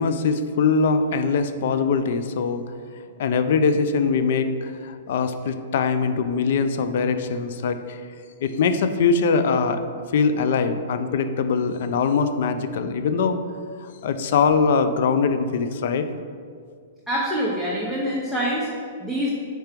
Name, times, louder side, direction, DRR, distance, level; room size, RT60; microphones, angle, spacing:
voice 1, 0.0-2.6 3.2-8.0 8.4-9.8 10.1-13.4 13.8-16.1, left 5 dB, 55° left, 10 dB, 0.4 m, -22 dB
voice 2, 17.1-19.3, equal, 5° left, -7 dB, 0.7 m, -25 dB
4.5 x 4.5 x 5.1 m, 2.1 s
hypercardioid pair, 160°, 0 cm